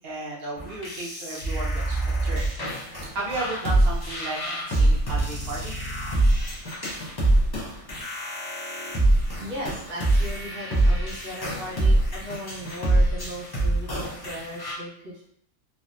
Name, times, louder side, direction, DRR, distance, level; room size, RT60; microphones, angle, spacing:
voice 1, 0.0-2.5 2.8-5.7, right 2 dB, 50° right, -6 dB, 1.0 m, -34 dB
sound 1, 0.6-14.7, right 1 dB, 35° left, 0.4 m, -24 dB
voice 2, 9.3-15.3, equal, 85° right, -5 dB, 1.4 m, -37 dB
3.4 x 2.2 x 2.6 m, 0.68 s
omnidirectional pair, 1.4 m